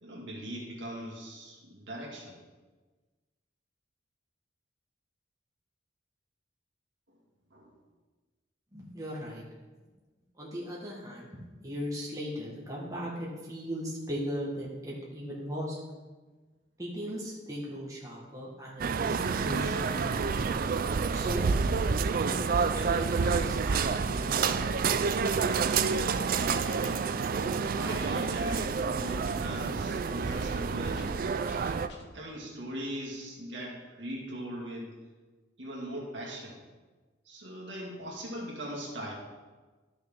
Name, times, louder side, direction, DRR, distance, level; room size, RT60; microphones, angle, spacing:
voice 1, 0.0-2.4 7.1-7.2 7.5-7.7 26.2-27.2 27.7-31.3 32.1-35.0 35.6-36.6 37.3-39.1, equal, 70° right, -2 dB, 2.1 m, -40 dB
voice 2, 8.7-9.4 10.4-11.3 11.6-15.8 16.8-20.2 21.1-21.4 22.3-24.8, equal, 20° right, -5 dB, 1.6 m, -38 dB
sound 1, 18.8-31.9, right 5 dB, 45° right, 0.3 m, -28 dB
sound 2, 26.7-32.2, left 1 dB, 60° left, 0.9 m, -52 dB
12.0 x 6.1 x 3.7 m, 1.3 s
head